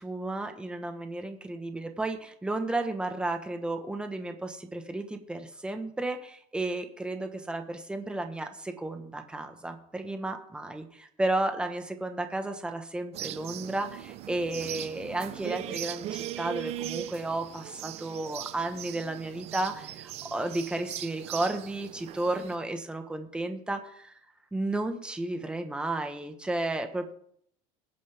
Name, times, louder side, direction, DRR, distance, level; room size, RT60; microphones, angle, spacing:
voice 1, 0.0-24.1 24.5-27.1, right 2 dB, 5° right, 6 dB, 1.2 m, -33 dB
sound 1, 13.1-22.6, right 12 dB, 40° right, 0.7 m, -39 dB
22.0 x 9.4 x 3.5 m, 0.66 s
cardioid pair, 160°, 17 cm